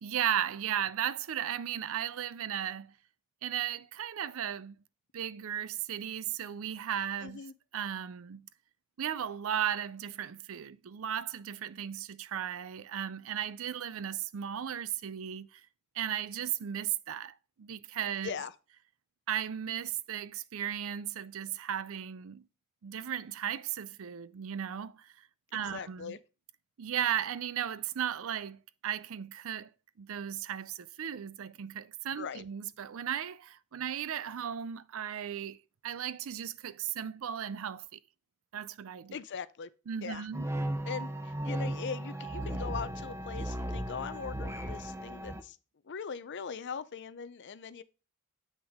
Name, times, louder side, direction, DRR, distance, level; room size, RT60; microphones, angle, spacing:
voice 1, 0.0-2.9 3.4-4.7 5.1-7.4 7.7-8.5 9.0-15.6 15.9-18.3 19.3-22.4 22.8-25.1 25.5-26.2 26.8-29.7 30.0-35.6 35.8-37.9 38.5-39.2 39.9-40.5, right 9 dB, 65° right, 0.4 m, -36 dB
voice 2, 7.2-7.5 18.2-18.6 25.5-26.2 32.2-32.4 39.1-39.7 40.0-40.3 40.9-45.6 45.8-47.8, left 6 dB, 50° left, 0.5 m, -40 dB
sound 1, 40.3-45.4, right 1 dB, 10° right, 0.5 m, -36 dB
8.1 x 6.1 x 3.5 m
head